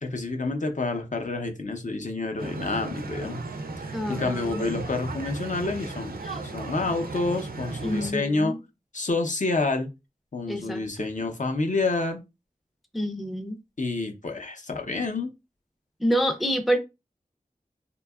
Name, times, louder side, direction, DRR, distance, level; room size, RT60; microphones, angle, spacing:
voice 1, 0.0-3.4 4.1-6.2 6.4-8.6 8.9-9.9 10.3-12.2 13.8-15.3, left 3 dB, 55° left, 0.5 m, -28 dB
sound 1, 2.4-8.1, right 3 dB, 85° right, 0.4 m, -35 dB
voice 2, 3.9-4.6 6.3-6.4 7.8-8.6 10.5-11.1 12.9-13.6 16.0-16.8, equal, ahead, 0.4 m, -27 dB
2.7 x 2.2 x 2.3 m
wide cardioid pair, 50°, 15 cm